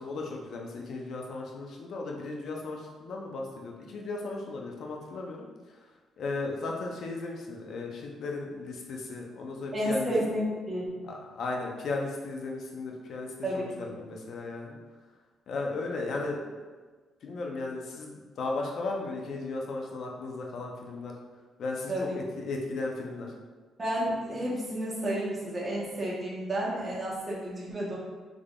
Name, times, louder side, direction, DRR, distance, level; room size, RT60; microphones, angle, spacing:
voice 1, 0.0-5.9 6.2-10.1 11.0-13.5 13.8-14.8 15.5-16.5 17.2-21.1 21.6-23.3, left 3 dB, 65° left, 0 dB, 0.6 m, -36 dB
voice 2, 9.7-11.0 13.4-13.6 21.9-22.1 23.8-28.0, equal, 30° right, -6 dB, 1.1 m, -31 dB
3.5 x 3.3 x 2.4 m, 1.4 s
cardioid pair, 90°, 0 cm